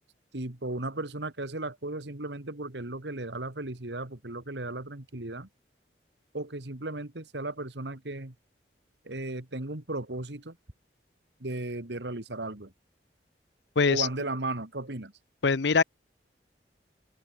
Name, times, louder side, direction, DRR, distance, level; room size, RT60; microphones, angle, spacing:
voice 1, 0.3-5.5 6.3-8.3 9.1-10.5 11.4-12.7 13.9-15.1, right 2 dB, 80° right, 2.2 m, -35 dB
voice 2, 13.8-14.1 15.4-15.8, left 5 dB, 80° left, 0.7 m, -22 dB
open air
head